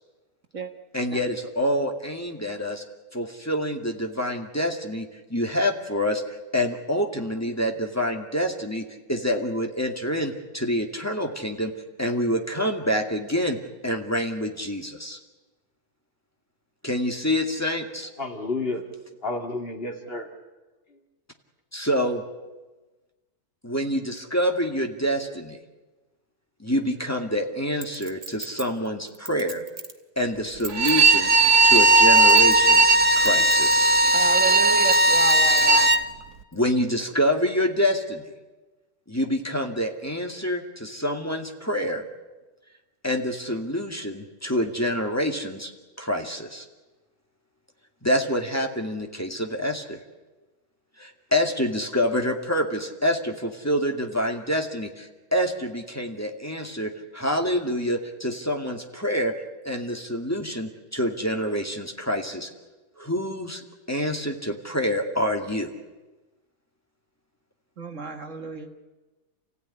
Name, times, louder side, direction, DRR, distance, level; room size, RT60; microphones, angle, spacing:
voice 1, 0.9-2.8 3.1-6.2 6.5-11.7 12.0-13.6 13.8-15.2 16.8-18.1 21.7-22.2 23.6-25.6 26.6-29.6 30.2-31.3 31.6-33.9 36.5-38.2 39.1-42.0 43.0-45.7 46.0-46.6 48.0-50.0 51.0-59.3 59.6-62.5 63.0-63.6 63.9-65.7, equal, 10° left, 2 dB, 2.1 m, -27 dB
voice 2, 18.2-20.2 20.9-21.0, left 2 dB, 35° left, 3 dB, 2.6 m, -31 dB
Chink clink, 27.8-30.0 30.5-31.1 31.7-32.9 33.2-33.7 34.1-34.2 34.8-36.0 36.5-36.6, right 3 dB, 35° right, 1.8 m, -37 dB
Bowed string instrument, 30.7-36.0, right 2 dB, 90° right, 1.7 m, -17 dB
voice 3, 34.0-35.9 67.8-68.7, right 4 dB, 55° right, 6 dB, 1.8 m, -32 dB
29.0 x 16.0 x 9.9 m, 1.2 s
omnidirectional pair, 1.6 m